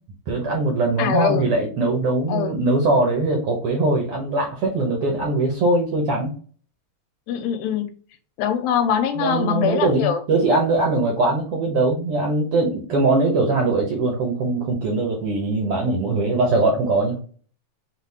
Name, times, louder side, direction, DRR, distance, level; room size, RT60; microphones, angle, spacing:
voice 1, 0.3-6.3 9.1-17.2, right 2 dB, 70° right, 1.4 m, -21 dB
voice 2, 1.0-1.5 2.3-2.6 7.3-7.9 8.4-10.2, left 8 dB, 90° left, 2.6 m, -22 dB
6.1 x 2.4 x 3.5 m
omnidirectional pair, 4.1 m